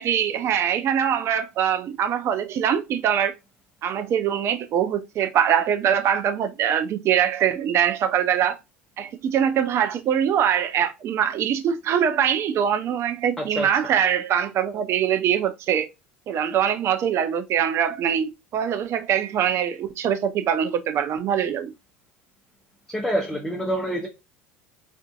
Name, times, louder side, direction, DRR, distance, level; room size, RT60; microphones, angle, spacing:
voice 1, 0.0-3.3 3.8-8.6 9.0-15.9 16.3-21.7, right 9 dB, 45° right, 0.4 m, -23 dB
voice 2, 13.4-13.7 22.9-24.1, equal, 5° left, 0.6 m, -26 dB
2.5 x 2.4 x 2.3 m
hypercardioid pair, 75°, 6 cm